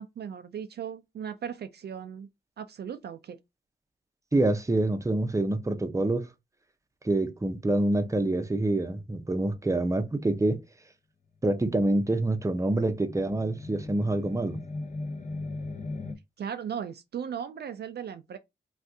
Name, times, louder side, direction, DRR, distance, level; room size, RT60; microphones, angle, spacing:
voice 1, 0.0-2.3 2.6-3.4 16.4-18.4, right 8 dB, 60° right, 0.4 m, -37 dB
voice 2, 4.3-6.3 7.0-10.6 11.4-14.6, right 2 dB, 15° right, 0.6 m, -26 dB
sound 1, 12.1-16.2, left 3 dB, 40° left, 0.6 m, -39 dB
2.6 x 2.4 x 3.4 m
cardioid pair, 55°, 19 cm